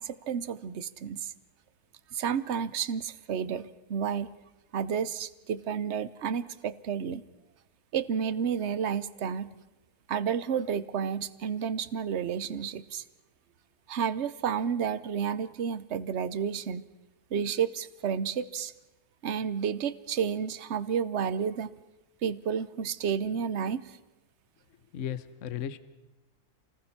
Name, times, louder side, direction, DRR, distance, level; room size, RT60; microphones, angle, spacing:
voice 1, 0.0-1.3 2.1-4.3 4.7-7.2 7.9-9.5 10.1-13.0 13.9-16.8 17.3-18.7 19.2-21.7 22.2-24.0, right 7 dB, 50° right, 15 dB, 1.0 m, -31 dB
voice 2, 24.9-25.8, left 9 dB, 55° left, 14 dB, 1.2 m, -35 dB
28.5 x 19.5 x 5.9 m, 1.1 s
omnidirectional pair, 1.6 m